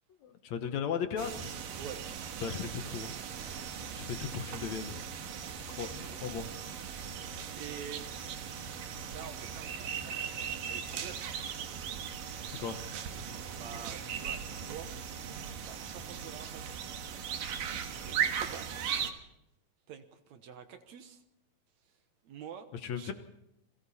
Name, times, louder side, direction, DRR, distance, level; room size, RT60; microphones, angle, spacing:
voice 1, 0.2-1.6 2.4-3.1 3.9-5.0 5.7-6.4 12.4-13.0 22.8-23.1, left 7 dB, 65° left, 8 dB, 2.2 m, -37 dB
sound 1, 1.2-19.1, right 7 dB, 80° right, 3.1 m, -38 dB
sound 2, 3.3-15.3, left 1 dB, 5° left, 7.2 m, -62 dB
voice 2, 7.5-8.1 9.0-11.4 13.6-14.9 15.7-16.8 17.9-18.8 19.9-21.2 21.9-22.0 22.2-22.7 22.9-23.1, right 8 dB, 65° right, 8 dB, 2.2 m, -47 dB
29.5 x 21.5 x 4.2 m, 0.83 s
omnidirectional pair, 3.8 m